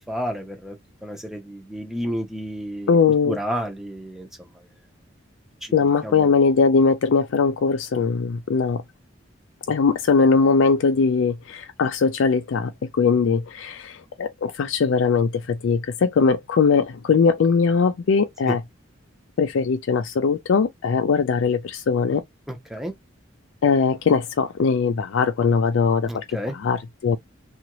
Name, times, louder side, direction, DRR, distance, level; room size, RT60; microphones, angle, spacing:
voice 1, 0.1-0.8 1.0-3.0 3.3-4.3 6.0-6.3 22.5-22.9 26.1-26.5, equal, ahead, 0.6 m, -31 dB
voice 2, 2.9-3.4 5.7-8.8 9.7-18.6 19.4-22.2 23.6-26.2 26.5-27.2, left 5 dB, 80° left, 0.4 m, -20 dB
2.7 x 2.4 x 2.9 m
head